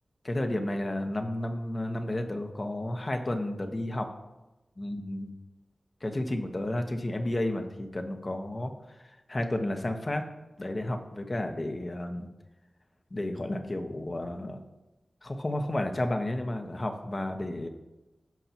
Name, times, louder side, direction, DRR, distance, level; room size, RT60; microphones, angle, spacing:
voice 1, 0.2-4.1 4.8-5.3 6.0-10.3 10.6-12.3 13.1-14.6 15.2-17.7, left 1 dB, 40° left, 5 dB, 1.1 m, -32 dB
15.0 x 5.7 x 3.0 m, 1.0 s
cardioid pair, 50°, 0 cm